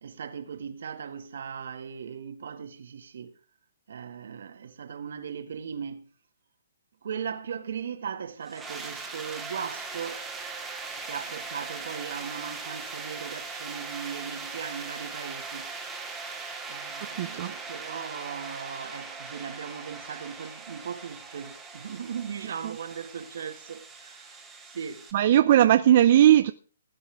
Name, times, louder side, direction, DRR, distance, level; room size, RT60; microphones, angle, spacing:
voice 1, 0.0-3.3 3.9-6.1 7.0-10.2 10.9-15.7 16.7-24.4 24.7-25.1, right 7 dB, 65° right, 1.8 m, -38 dB
sound 1, 8.4-25.1, right 4 dB, 5° right, 2.0 m, -40 dB
voice 2, 17.2-17.5 25.1-26.5, right 11 dB, 40° right, 0.6 m, -18 dB
18.0 x 9.8 x 3.5 m
hypercardioid pair, 170°, 0 cm